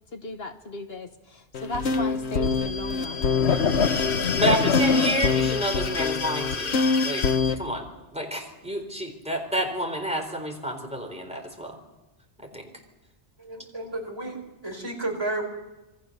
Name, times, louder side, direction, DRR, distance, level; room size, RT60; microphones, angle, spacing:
voice 1, 0.1-3.3 4.5-4.8, left 2 dB, 65° left, 7 dB, 1.4 m, -36 dB
sound 1, 1.5-7.6, left 5 dB, 85° left, 1.5 m, -24 dB
voice 2, 4.4-7.9 8.1-11.8 12.4-12.7, right 1 dB, 5° right, 3 dB, 3.9 m, -29 dB
voice 3, 13.4-15.5, right 2 dB, 25° right, 2 dB, 4.7 m, -32 dB
27.0 x 21.5 x 6.7 m, 1.0 s
omnidirectional pair, 1.1 m